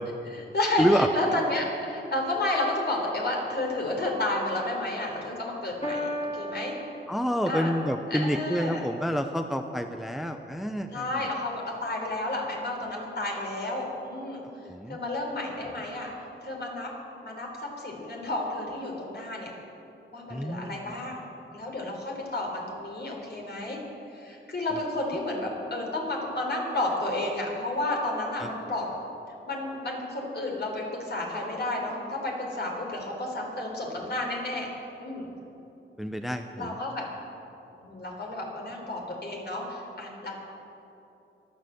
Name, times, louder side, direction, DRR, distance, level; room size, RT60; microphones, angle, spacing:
voice 1, 0.2-6.7 7.5-7.7 8.1-8.9 10.9-14.4 14.9-16.1 16.4-16.9 17.2-17.5 17.8-19.5 20.1-21.2 21.5-23.8 24.1-28.9 29.5-34.7 35.0-35.3 36.6-37.0 37.8-40.3, left 2 dB, 55° left, -1 dB, 4.0 m, -31 dB
voice 2, 0.8-1.1 7.1-11.0 14.6-15.0 20.3-21.0 28.4-28.5 36.0-36.8, equal, ahead, 7 dB, 0.6 m, -28 dB
Piano, 5.8-7.8, equal, 30° left, 2.5 m, -35 dB
23.0 x 8.2 x 7.7 m, 2.9 s
wide cardioid pair, 90°, 21 cm